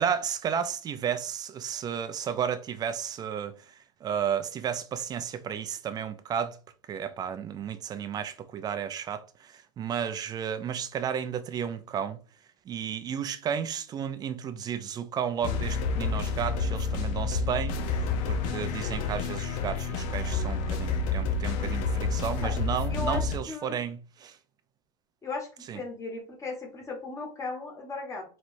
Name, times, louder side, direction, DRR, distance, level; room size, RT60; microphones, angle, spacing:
voice 1, 0.0-3.5 4.0-6.6 6.9-12.2 12.7-24.4 25.7-25.8, right 8 dB, 25° right, 0.4 m, -33 dB
sound 1, 15.4-23.4, left 4 dB, 50° left, 0.8 m, -29 dB
voice 2, 22.9-23.2 23.5-23.8 25.2-28.2, left 3 dB, 20° left, 1.5 m, -36 dB
4.4 x 3.2 x 2.6 m
supercardioid pair, 135°, 17 cm